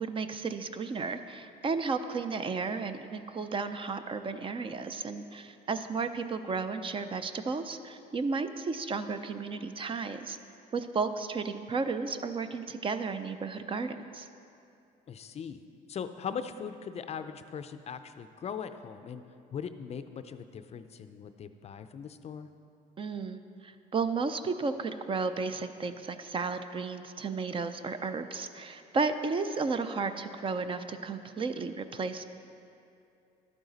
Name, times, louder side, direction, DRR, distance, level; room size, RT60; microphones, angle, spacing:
voice 1, 0.0-10.4 10.7-14.3 23.0-32.3, right 4 dB, 30° right, 10 dB, 0.5 m, -33 dB
voice 2, 15.1-15.6 15.9-19.2 19.5-22.5, left 7 dB, 40° left, 10 dB, 0.5 m, -40 dB
12.0 x 8.9 x 4.0 m, 2.6 s
cardioid pair, 110°, 17 cm